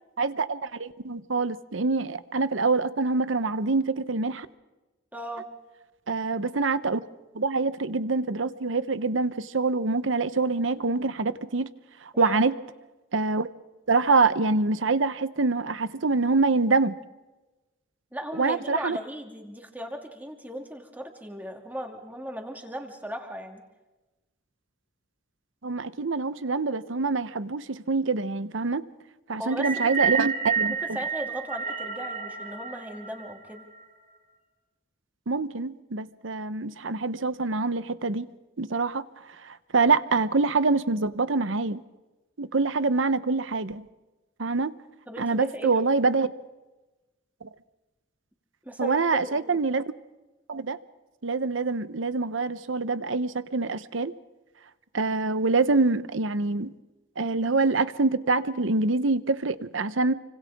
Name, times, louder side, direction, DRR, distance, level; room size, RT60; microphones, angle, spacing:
voice 1, 0.2-4.5 6.1-7.0 7.3-11.7 12.0-12.5 13.1-13.5 13.9-17.0 18.4-19.0 25.6-28.8 29.3-30.7 35.3-38.3 38.6-39.0 39.4-41.8 42.4-43.9 44.4-44.7 45.2-46.3 47.4-47.5 48.8-49.8 50.5-50.8 51.2-54.1 54.9-56.7 57.2-60.1, right 3 dB, 80° right, 14 dB, 0.9 m, -25 dB
voice 2, 5.1-5.5 12.1-12.4 18.1-23.6 29.4-30.2 30.7-33.6 45.1-45.8 48.6-49.5, equal, 10° right, 3 dB, 2.6 m, -37 dB
sound 1, 29.5-33.8, right 6 dB, 45° right, 5.3 m, -30 dB
29.0 x 25.5 x 3.6 m, 1.1 s
head